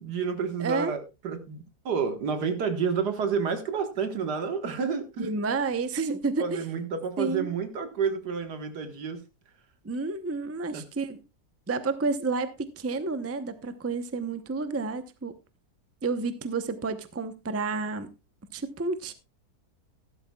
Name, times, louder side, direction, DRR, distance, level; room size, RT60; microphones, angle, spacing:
voice 1, 0.0-5.3 6.4-9.2 10.7-10.8, right 6 dB, 85° right, 2.0 m, -30 dB
voice 2, 0.6-0.9 5.2-6.6 7.2-7.5 9.8-11.2 11.7-15.3 16.0-18.1 18.5-19.1, right 4 dB, 15° right, 0.5 m, -30 dB
14.5 x 12.0 x 2.3 m
omnidirectional pair, 1.7 m